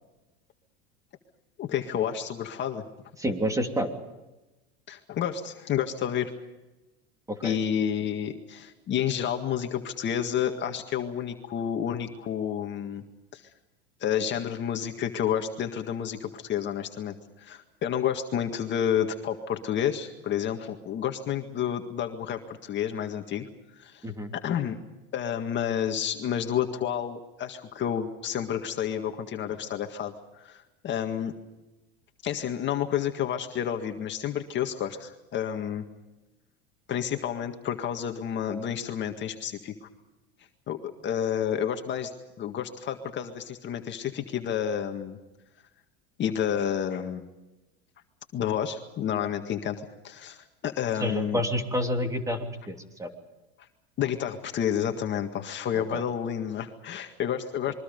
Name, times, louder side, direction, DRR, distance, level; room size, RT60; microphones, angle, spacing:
voice 1, 1.6-2.8 4.9-6.3 7.4-13.0 13.3-13.5 14.0-23.5 23.8-24.1 24.3-24.8 25.1-31.3 32.2-35.9 36.9-39.9 40.7-42.1 42.4-45.2 46.2-47.3 48.3-51.4 54.0-57.7, left 9 dB, 35° left, 5 dB, 1.9 m, -30 dB
voice 2, 3.2-3.9 7.3-7.6 24.0-24.3 51.0-53.1 55.9-56.0 57.7-57.8, equal, 10° right, 5 dB, 3.0 m, -29 dB
28.0 x 23.0 x 5.3 m, 1.0 s
supercardioid pair, 120°, 31 cm